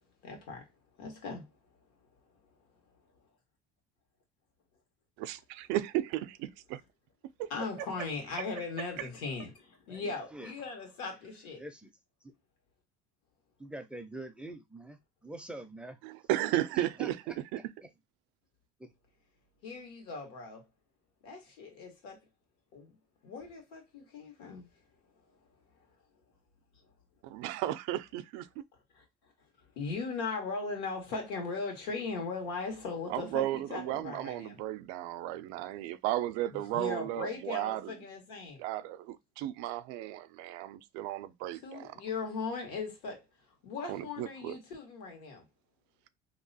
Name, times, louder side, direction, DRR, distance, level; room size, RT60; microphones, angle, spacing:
voice 1, 0.2-0.6 1.0-1.4 7.5-11.6 19.6-20.6 21.2-22.2 22.7-22.9 23.2-24.7 29.8-34.6 36.5-38.6 41.6-43.2 43.6-45.4, left 4 dB, 85° left, 1.5 m, -38 dB
voice 2, 5.2-6.8 7.4-7.5 16.0-17.2 17.5-17.6 27.2-28.6 33.1-37.9 38.6-41.9 43.9-44.6, right 14 dB, 70° right, 0.4 m, -34 dB
voice 3, 9.9-10.5 11.6-11.9 12.2-12.3 13.6-16.0 16.7-17.1 17.5-17.6 18.8-18.9, right 1 dB, 5° right, 0.4 m, -45 dB
2.9 x 2.2 x 3.9 m
cardioid pair, 125°, 19 cm